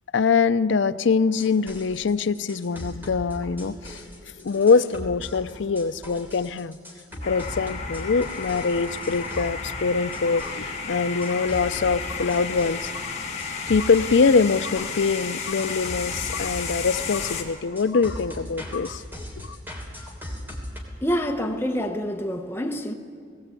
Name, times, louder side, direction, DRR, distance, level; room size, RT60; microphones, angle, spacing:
voice 1, 0.1-4.0 4.4-6.8 7.3-13.1 13.7-19.0 19.4-19.6, left 5 dB, 65° left, 0.5 m, -23 dB
sound 1, 1.3-10.7 11.2-12.9 13.4-15.2 15.6-20.8, equal, 10° right, 3.0 m, -39 dB
sound 2, 7.2-17.4, left 5 dB, 35° left, 1.9 m, -33 dB
voice 2, 21.0-22.9, equal, 10° left, 0.9 m, -27 dB
18.5 x 17.5 x 8.3 m
head